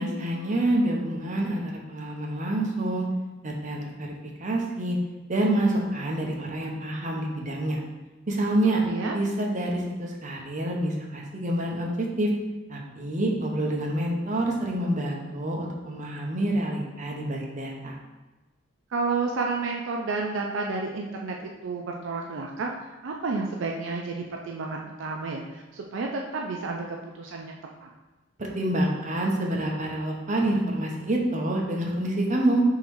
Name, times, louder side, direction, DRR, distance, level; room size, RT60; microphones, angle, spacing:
voice 1, 0.0-3.1 3.4-4.1 4.4-5.0 5.3-7.8 8.3-8.8 9.1-12.3 12.7-17.9 28.4-32.6, right 1 dB, 40° right, -1 dB, 0.8 m, -27 dB
voice 2, 8.8-9.2 18.9-22.8 23.0-27.6 27.8-27.9, right 4 dB, 70° right, 1 dB, 0.4 m, -31 dB
3.7 x 3.0 x 4.5 m, 1.2 s
head